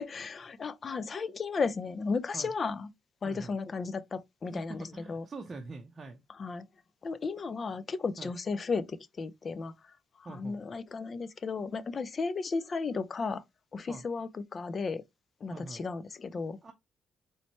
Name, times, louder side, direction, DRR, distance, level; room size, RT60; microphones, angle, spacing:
voice 1, 0.0-2.9 3.2-5.3 6.3-6.6 7.0-9.7 10.2-13.4 13.7-15.0 15.4-16.6, left 4 dB, 40° left, 0.4 m, -34 dB
voice 2, 4.5-6.2 8.2-8.3 10.2-10.6 13.9-14.0 15.5-15.8 16.6-16.7, right 3 dB, 35° right, 0.6 m, -44 dB
4.1 x 3.2 x 3.0 m
cardioid pair, 90°, 0 cm